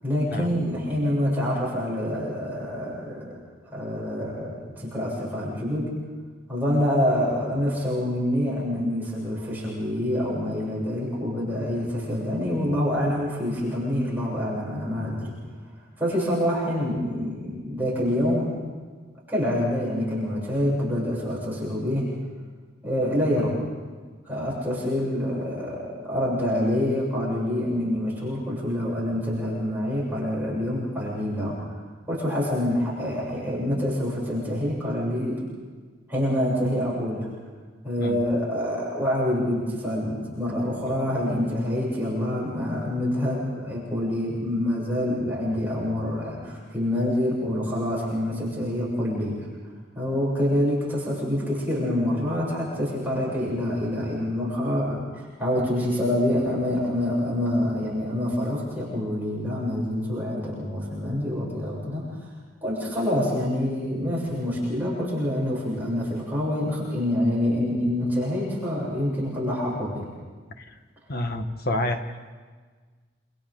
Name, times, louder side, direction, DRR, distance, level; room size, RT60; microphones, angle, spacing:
voice 1, 0.0-3.3 3.7-5.9 6.5-15.3 16.0-18.5 19.3-22.1 22.8-23.6 24.2-31.8 32.1-35.4 36.1-37.3 37.8-49.5 49.9-62.3 62.6-70.0, left 1 dB, 10° right, -7 dB, 8.0 m, -26 dB
voice 2, 71.1-72.0, left 1 dB, 55° left, 6 dB, 1.6 m, -28 dB
28.5 x 28.0 x 3.9 m, 1.5 s
head